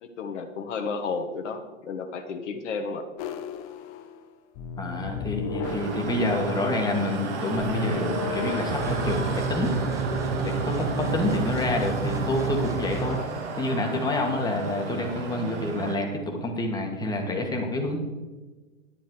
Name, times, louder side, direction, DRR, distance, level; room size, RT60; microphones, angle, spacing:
voice 1, 0.0-3.1 13.0-13.3, left 4 dB, 60° left, 4 dB, 1.4 m, -33 dB
sound 1, 3.2-4.3 4.6-6.5 7.6-9.6, left 7 dB, 35° left, 1.0 m, -35 dB
voice 2, 4.8-9.7 10.4-13.2 13.6-18.0, left 2 dB, 10° left, 1 dB, 1.9 m, -28 dB
sound 2, 5.6-16.0, right 3 dB, 60° right, 2.4 m, -32 dB
sound 3, 8.8-13.2, right 4 dB, 10° right, 1.0 m, -30 dB
11.0 x 9.8 x 4.7 m, 1.2 s
hypercardioid pair, 125°, 40 cm